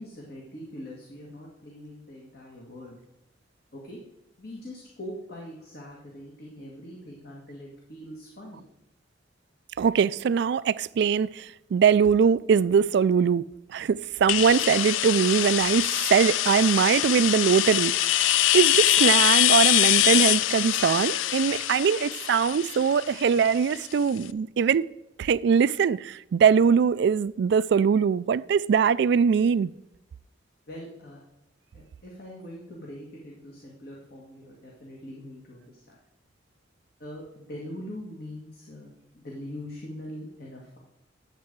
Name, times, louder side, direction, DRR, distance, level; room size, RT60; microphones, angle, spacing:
voice 1, 0.0-3.0 3.7-4.0 4.4-8.7 30.7-31.2 31.7-36.0 37.0-40.8, left 1 dB, 55° left, 1.8 m, -42 dB
voice 2, 9.8-13.4 13.7-18.3 18.5-24.9 25.2-29.7, right 6 dB, 65° right, 0.3 m, -22 dB
sound 1, 14.3-23.9, left 13 dB, 85° left, 0.3 m, -23 dB
10.0 x 7.5 x 4.6 m
head